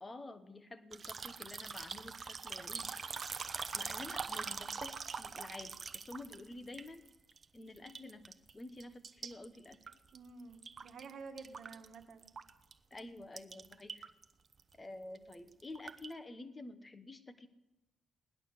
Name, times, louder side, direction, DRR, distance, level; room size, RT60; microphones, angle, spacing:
voice 1, 0.0-2.9 3.5-7.0 7.5-9.8 12.9-14.1 14.7-17.5, left 2 dB, 25° left, 11 dB, 1.1 m, -49 dB
sound 1, 0.9-7.4 7.8-8.5 8.8-11.1 11.4-12.7 13.0-13.1 13.4-14.2 14.5-14.7 15.2-16.1, right 5 dB, 40° right, 0.9 m, -43 dB
voice 2, 10.1-12.3, right 4 dB, 70° right, 6 dB, 1.6 m, -50 dB
18.5 x 11.0 x 6.7 m, 1.0 s
cardioid pair, 95°, 0 cm